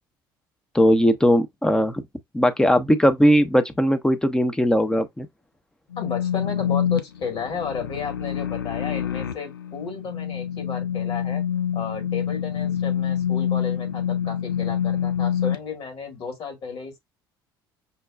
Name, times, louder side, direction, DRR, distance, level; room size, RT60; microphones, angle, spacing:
voice 1, 0.7-2.0 2.3-5.3, equal, 5° left, 0.7 m, -19 dB
sound 1, 5.9-15.6, left 9 dB, 85° left, 0.4 m, -26 dB
voice 2, 6.0-11.4 11.7-17.0, left 5 dB, 50° left, 1.6 m, -33 dB
5.5 x 2.2 x 2.3 m
figure-of-eight pair, 60°, 12 cm